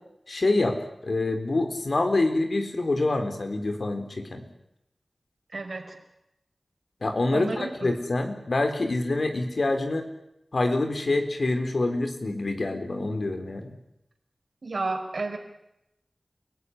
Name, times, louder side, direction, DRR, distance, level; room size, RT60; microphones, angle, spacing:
voice 1, 0.3-0.8 1.0-4.4 7.0-10.1 10.5-13.8, left 2 dB, 75° left, 6 dB, 4.1 m, -26 dB
voice 2, 5.5-6.0 7.3-7.9 14.6-15.4, right 3 dB, 75° right, 4 dB, 5.2 m, -31 dB
29.5 x 17.5 x 9.9 m, 0.84 s
wide cardioid pair, 45°, 0 cm